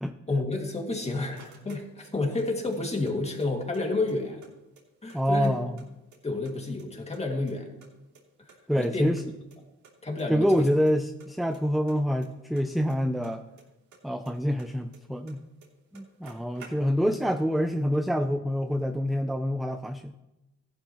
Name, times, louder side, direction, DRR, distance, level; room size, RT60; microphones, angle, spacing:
voice 1, 0.3-4.4 5.0-5.5 6.2-7.7 8.5-9.1 10.0-10.7, left 2 dB, 20° left, 2 dB, 2.3 m, -30 dB
sound 1, 0.7-2.5 2.7-3.8 4.1-4.2 4.4-5.8 6.1-6.9 7.1-8.6 8.8-8.9 9.2-9.3 9.5-9.6 9.8-10.2 10.5-10.9 11.2-13.6 13.9-15.3 15.6-15.7 15.9-17.2, right 5 dB, 70° right, 3.1 m, -53 dB
voice 2, 5.1-5.7 8.7-9.2 10.3-13.4 14.0-15.4 15.9-20.1, equal, ahead, 7 dB, 0.6 m, -26 dB
15.0 x 11.5 x 3.1 m, 0.97 s
cardioid pair, 90°, 30 cm